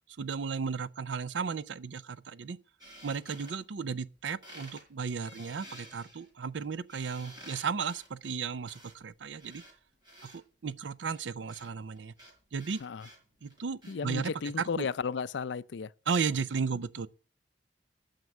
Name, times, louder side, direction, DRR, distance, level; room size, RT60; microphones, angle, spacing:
voice 1, 0.2-2.6 3.0-9.6 10.2-12.1 12.5-12.8 13.4-14.9 16.1-17.1, right 5 dB, 85° right, 0.5 m, -34 dB
sound 1, 2.8-4.2 4.4-4.8 5.2-10.4 11.1-14.3, equal, 25° right, 4.3 m, -52 dB
voice 2, 13.9-15.9, left 5 dB, 75° left, 0.4 m, -34 dB
9.4 x 6.7 x 7.2 m
head